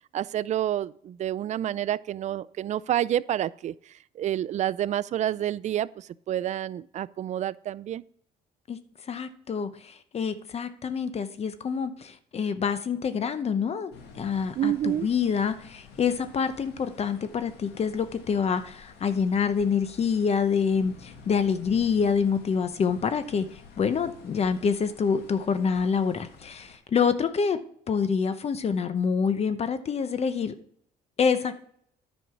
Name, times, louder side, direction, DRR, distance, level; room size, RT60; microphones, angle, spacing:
voice 1, 0.1-8.0 14.6-15.1, right 11 dB, 45° right, 18 dB, 0.4 m, -29 dB
voice 2, 9.1-27.6 27.9-30.5 31.2-31.6, left 6 dB, 40° left, 11 dB, 0.8 m, -26 dB
sound 1, 13.9-26.8, left 5 dB, 85° left, 1.8 m, -51 dB
10.0 x 5.3 x 5.9 m, 0.66 s
cardioid pair, 110°, 17 cm